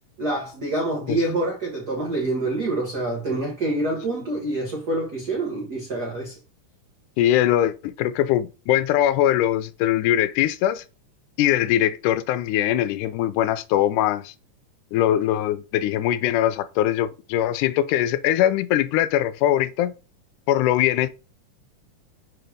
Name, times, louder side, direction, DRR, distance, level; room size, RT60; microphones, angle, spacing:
voice 1, 0.2-6.3, right 2 dB, 75° right, 0.9 m, -26 dB
voice 2, 7.2-10.8 11.4-14.3 14.9-19.9 20.5-21.1, left 12 dB, 80° left, 2.0 m, -21 dB
6.2 x 3.4 x 5.0 m
omnidirectional pair, 3.7 m